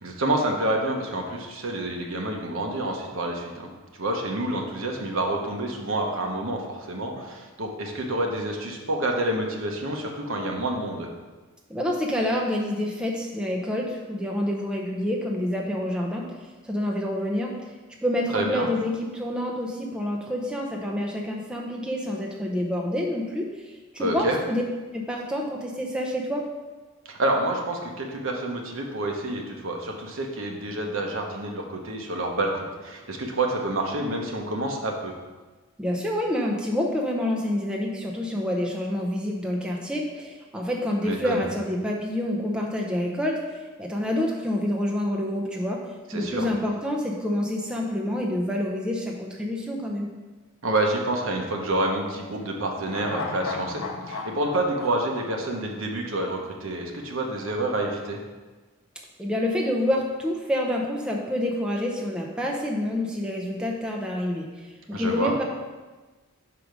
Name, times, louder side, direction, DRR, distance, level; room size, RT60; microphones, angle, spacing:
voice 1, 0.0-3.7 4.0-11.1 18.3-18.7 24.0-24.4 27.0-35.1 41.0-41.4 46.1-46.5 50.6-58.2 64.9-65.3, right 1 dB, 60° right, 1 dB, 0.9 m, -28 dB
voice 2, 11.7-17.7 18.0-24.6 24.9-26.4 35.8-43.4 43.8-45.8 46.1-50.1 59.2-65.4, left 1 dB, 5° right, -2 dB, 0.6 m, -27 dB
sound 1, 52.8-56.2 56.5-56.6, left 3 dB, 60° left, 0.6 m, -36 dB
4.9 x 4.7 x 5.1 m, 1.3 s
head